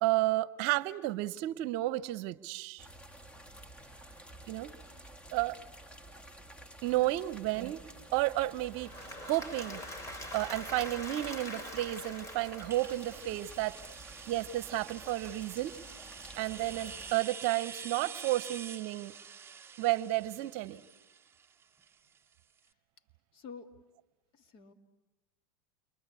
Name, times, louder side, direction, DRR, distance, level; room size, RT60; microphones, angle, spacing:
voice 1, 0.0-2.9 4.5-4.7 5.3-5.6 6.8-7.8 8.1-8.9 9.2-9.8 10.3-13.8 14.3-15.8 16.4-19.1 19.8-20.8, right 17 dB, 55° right, 17 dB, 0.9 m, -32 dB
sound 1, 2.8-17.2, right 1 dB, 10° left, 1.6 m, -51 dB
Applause / Crowd, 8.6-13.6, left 1 dB, 25° left, 4.4 m, -44 dB
sound 2, 12.7-22.3, right 6 dB, 20° right, 0.9 m, -47 dB
voice 2, 23.3-23.7 24.3-24.7, left 5 dB, 45° left, 7 dB, 2.3 m, -49 dB
29.5 x 23.5 x 8.3 m, 1.1 s
hypercardioid pair, 105°, 12 cm